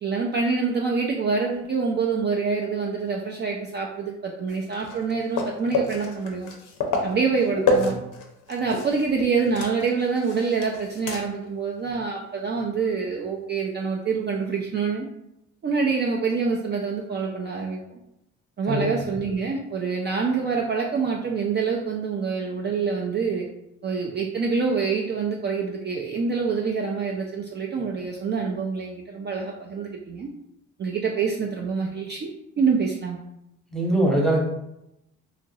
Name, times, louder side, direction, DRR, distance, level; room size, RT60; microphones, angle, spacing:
voice 1, 0.0-6.5 7.0-8.0 8.5-15.1 15.6-18.0 18.6-23.5 23.8-30.3 30.8-32.3 32.6-33.2, right 5 dB, 35° right, -1 dB, 0.4 m, -26 dB
sound 1, 4.5-9.1 9.4-11.5 11.9-12.0 14.5-14.6, left 3 dB, 85° left, 0.6 m, -29 dB
voice 2, 33.7-34.4, right 1 dB, ahead, -2 dB, 0.8 m, -22 dB
3.0 x 2.5 x 2.7 m, 0.84 s
cardioid pair, 90°, 30 cm